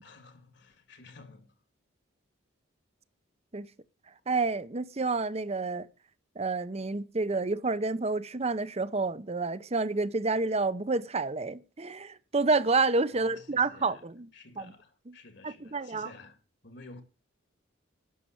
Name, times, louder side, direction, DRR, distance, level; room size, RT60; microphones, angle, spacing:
voice 1, 0.0-1.6 13.1-14.1 14.3-17.0, left 3 dB, 60° left, 2.1 m, -52 dB
voice 2, 4.3-5.8 6.4-14.3 14.6-14.7 15.4-16.1, right 3 dB, 30° right, 0.7 m, -29 dB
11.0 x 6.9 x 8.6 m
head